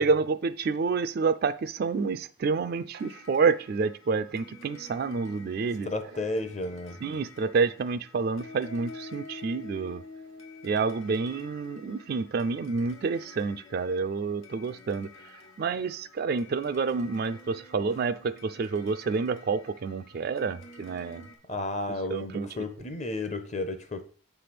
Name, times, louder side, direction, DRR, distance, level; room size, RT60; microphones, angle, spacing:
voice 1, 0.0-5.9 7.0-10.0 10.6-15.1 15.6-21.3 22.1-22.5, right 4 dB, 50° right, 0.3 m, -28 dB
sound 1, 3.0-21.4, left 3 dB, 85° left, 1.4 m, -49 dB
voice 2, 5.8-7.0 21.5-24.0, left 2 dB, 35° left, 0.8 m, -32 dB
7.5 x 3.4 x 5.9 m
head